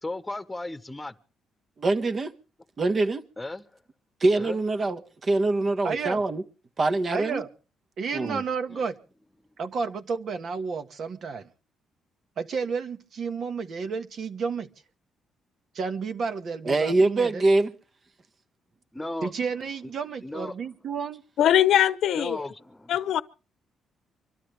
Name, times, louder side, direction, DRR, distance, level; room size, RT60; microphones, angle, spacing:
voice 1, 0.0-1.1 3.4-3.6 4.3-4.6 8.7-8.8 18.9-19.3 20.2-20.5 22.1-22.9, left 2 dB, 15° left, 1.2 m, -35 dB
voice 2, 1.8-2.3 2.8-3.2 4.2-6.4 6.8-7.4 8.1-8.4 16.6-17.7, right 2 dB, 40° right, 1.4 m, -24 dB
voice 3, 5.8-6.2 7.1-7.5 8.0-9.0 9.6-11.5 12.4-14.7 15.7-17.4 19.2-21.2, right 5 dB, 60° right, 1.5 m, -31 dB
voice 4, 21.4-22.4 22.9-23.2, left 11 dB, 75° left, 0.8 m, -21 dB
25.5 x 12.5 x 3.4 m
cardioid pair, 90°, 0 cm